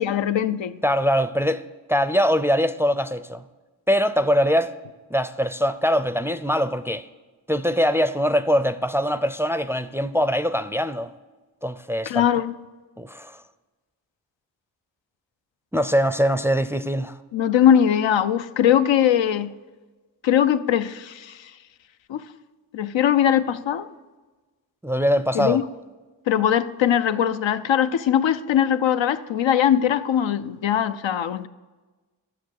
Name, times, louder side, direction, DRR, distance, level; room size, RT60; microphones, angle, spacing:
voice 1, 0.0-0.8 12.1-12.5 17.3-19.5 20.2-21.5 22.1-22.2 22.7-23.9 25.3-25.6 26.3-31.5, left 9 dB, 85° left, 0.6 m, -21 dB
voice 2, 0.8-1.6 1.9-3.5 3.9-4.7 5.1-7.1 7.5-11.1 11.6-12.2 13.0-13.4 15.7-17.2 24.8-25.6, equal, 5° right, 0.4 m, -22 dB
12.0 x 7.4 x 6.4 m
cardioid pair, 55°, 44 cm